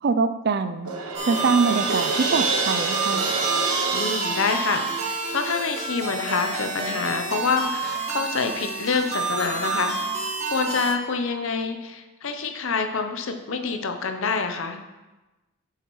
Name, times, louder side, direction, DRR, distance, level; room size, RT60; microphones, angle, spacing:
voice 1, 0.0-0.9 1.3-3.3, right 4 dB, 45° right, 11 dB, 0.4 m, -23 dB
Crash cymbal, 0.9-5.8, right 4 dB, 85° right, 1.2 m, -27 dB
sound 1, 1.1-10.9, right 3 dB, 30° right, 1.5 m, -29 dB
voice 2, 3.9-10.1 10.5-14.8, left 4 dB, 60° left, 6 dB, 0.7 m, -27 dB
8.1 x 7.9 x 3.1 m, 1.1 s
head